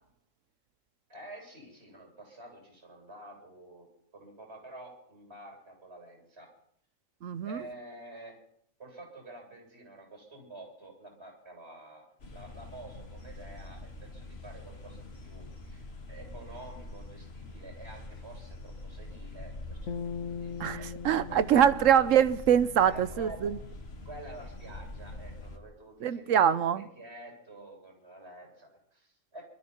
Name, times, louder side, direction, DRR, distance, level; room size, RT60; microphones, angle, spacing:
voice 1, 1.1-3.9 4.1-6.5 7.4-8.4 8.8-21.0 21.3-21.6 22.9-23.5 24.0-29.4, right 1 dB, 55° right, 8.5 m, -49 dB
voice 2, 7.2-7.6 20.6-23.6 26.0-26.8, right 9 dB, 75° right, 1.2 m, -24 dB
sound 1, 12.2-25.6, left 2 dB, 50° left, 1.9 m, -45 dB
sound 2, 19.9-23.2, left 6 dB, 75° left, 1.4 m, -41 dB
21.5 x 14.0 x 4.4 m
omnidirectional pair, 1.4 m